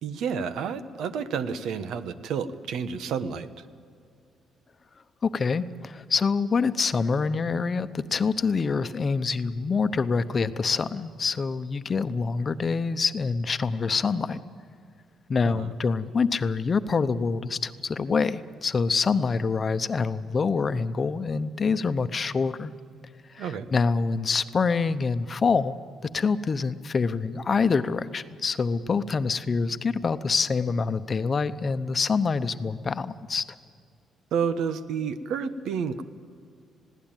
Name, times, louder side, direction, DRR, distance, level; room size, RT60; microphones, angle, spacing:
voice 1, 0.0-3.5 15.4-15.7 23.4-23.7 34.3-36.0, right 6 dB, 80° right, 11 dB, 1.1 m, -30 dB
voice 2, 5.2-14.4 15.3-22.7 23.3-25.7 26.1-33.4, left 5 dB, 40° left, 12 dB, 0.9 m, -26 dB
20.5 x 16.5 x 9.1 m, 2.2 s
cardioid pair, 90°, 0 cm